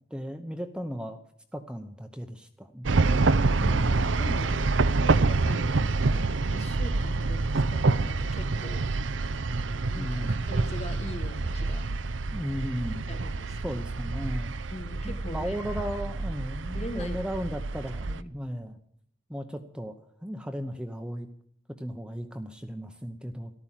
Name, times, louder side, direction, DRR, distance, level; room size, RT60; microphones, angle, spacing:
voice 1, 0.1-1.2 1.5-3.0 4.6-4.8 9.9-10.4 12.3-13.1 13.6-14.5 15.0-18.8 19.3-20.0 20.2-21.3 21.8-23.5, equal, 5° right, 6 dB, 0.8 m, -35 dB
Blanche Downhill, 2.8-18.2, right 3 dB, 80° right, 0.7 m, -27 dB
voice 2, 3.6-4.5 5.0-5.7 6.1-9.0 9.9-11.9 13.1-13.8 14.7-15.6 16.7-17.2 18.1-18.2, left 1 dB, 35° left, 8 dB, 1.4 m, -41 dB
14.0 x 12.5 x 7.5 m, 0.63 s
head